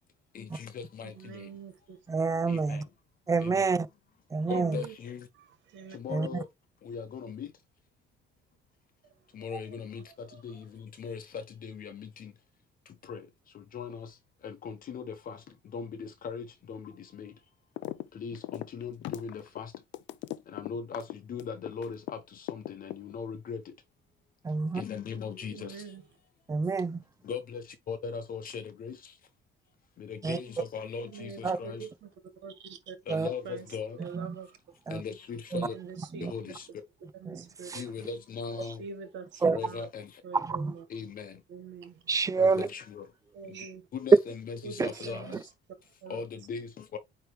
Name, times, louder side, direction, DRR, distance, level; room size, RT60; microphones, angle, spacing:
voice 1, 0.3-1.1 2.5-2.8 3.4-3.7 4.5-5.2 6.0-6.4 6.9-7.5 9.4-10.0 10.4-10.5 11.0-11.2 11.6-12.3 13.1-13.2 13.7-14.1 14.4-15.4 15.7-16.9 17.2-17.3 18.2-19.7 20.5-21.0 21.3-22.0 22.5-23.6 24.8-25.7 27.3-27.6 27.9-28.9 30.1-31.8 33.1-34.0 34.9-35.7 36.3-36.6 37.7-38.8 39.5-40.0 40.9-41.3 42.4-43.0 43.9-45.3 46.1-46.7 46.9-47.0, left 6 dB, 45° left, 1.0 m, -38 dB
voice 2, 1.0-2.0 4.5-4.9 5.7-6.0 10.3-10.4 25.3-26.0 31.1-32.1 32.4-33.0 33.4-33.7 34.0-34.5 35.7-36.3 37.2-37.8 38.8-39.8 40.2-40.8 41.5-41.9 43.3-43.8 44.6-45.4 46.0-46.2, right 6 dB, 65° right, 1.7 m, -44 dB
voice 3, 2.1-2.8 3.3-3.9 4.3-4.8 6.1-6.4 24.4-24.8 26.5-27.0 30.2-30.4 31.4-31.6 33.1-33.3 34.0-34.4 34.9-35.0 35.5-35.7 36.1-36.3 37.3-37.8 39.4-39.6 40.3-40.7 42.1-42.7 44.8-44.9, right 4 dB, 15° right, 0.5 m, -28 dB
sound 1, 17.8-18.1 18.3-22.1 22.5-23.4, left 15 dB, 70° left, 0.5 m, -38 dB
9.2 x 3.2 x 3.2 m
cardioid pair, 135°, 20 cm